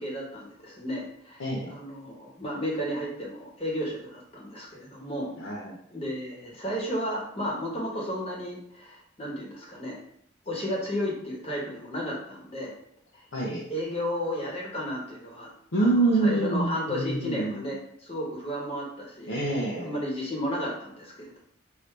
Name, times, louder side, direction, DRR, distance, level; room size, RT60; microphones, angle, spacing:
voice 1, 0.0-1.4 1.7-5.3 5.9-10.0 10.5-12.8 13.7-15.5 15.8-19.4 19.8-21.4, equal, 30° left, -2 dB, 1.1 m, -33 dB
voice 2, 1.4-1.8 5.4-5.8 13.3-13.6 15.7-17.7 19.3-20.0, right 2 dB, 80° left, -4 dB, 0.8 m, -26 dB
4.9 x 2.7 x 3.2 m, 0.69 s
head